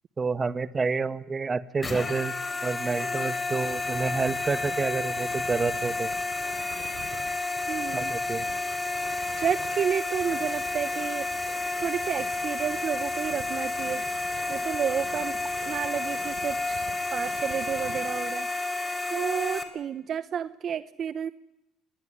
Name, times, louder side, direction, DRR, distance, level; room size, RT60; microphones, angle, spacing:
voice 1, 0.2-2.3 2.6-6.1 7.9-8.5, right 4 dB, 30° right, 13 dB, 1.6 m, -29 dB
sound 1, 1.8-19.6, left 2 dB, 30° left, 3.9 m, -31 dB
sound 2, 3.6-18.1, right 8 dB, 75° right, 4.2 m, -47 dB
voice 2, 7.7-8.1 9.4-11.3 11.8-14.0 14.5-15.3 15.7-16.8 17.1-18.5 19.1-21.3, right 8 dB, 55° right, 13 dB, 1.0 m, -30 dB
26.5 x 21.5 x 9.9 m, 0.87 s
supercardioid pair, 85°, 0 cm